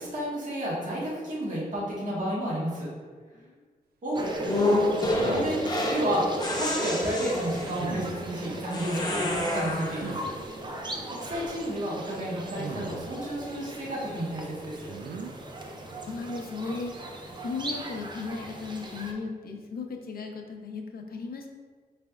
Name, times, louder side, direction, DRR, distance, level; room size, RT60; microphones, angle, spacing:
voice 1, 0.0-2.9 4.0-4.3 4.8-4.9 5.3-5.6 5.9-6.3 6.5-10.3 11.1-14.9, equal, 55° right, -7 dB, 1.3 m, -31 dB
voice 2, 3.3-3.7 10.7-11.1 15.9-17.0 17.4-21.5, left 4 dB, 75° left, 3 dB, 0.6 m, -36 dB
sound 1, 4.1-19.1, right 2 dB, 30° right, 0.5 m, -36 dB
sound 2, 4.5-6.1 6.4-7.9 8.7-10.1, left 2 dB, 25° left, 0.7 m, -29 dB
sound 3, 5.1-5.7 7.8-8.2 10.0-10.2 12.6-13.1 14.9-15.3, right 5 dB, 80° right, 0.4 m, -38 dB
5.0 x 3.3 x 2.3 m, 1.5 s
wide cardioid pair, 105°, 16 cm